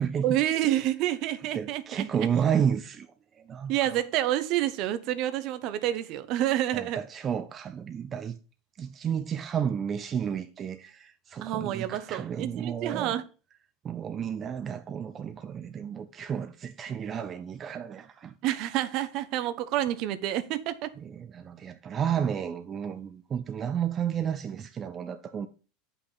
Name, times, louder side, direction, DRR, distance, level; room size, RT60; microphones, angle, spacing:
voice 1, 0.2-2.1 3.7-7.0 11.4-13.2 18.4-20.9, right 13 dB, 55° right, 0.9 m, -28 dB
voice 2, 1.5-3.1 3.4-4.0 6.7-8.4 8.8-13.2 13.8-18.4 21.0-25.5, right 8 dB, 35° right, 0.6 m, -31 dB
8.2 x 5.7 x 3.9 m
hypercardioid pair, 105°, 0 cm